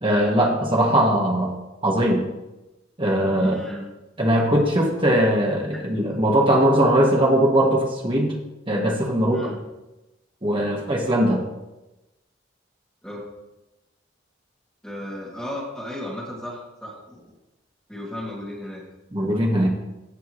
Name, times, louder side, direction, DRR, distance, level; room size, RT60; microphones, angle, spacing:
voice 1, 0.0-1.5 1.8-2.2 3.0-3.5 4.2-8.3 8.7-9.5 10.4-11.4 19.1-19.7, right 1 dB, 25° right, -1 dB, 1.7 m, -20 dB
voice 2, 3.4-3.9 9.3-9.6 13.0-13.2 14.8-17.2 17.9-18.8, left 1 dB, 5° left, -5 dB, 2.6 m, -34 dB
16.0 x 6.0 x 3.2 m, 0.99 s
head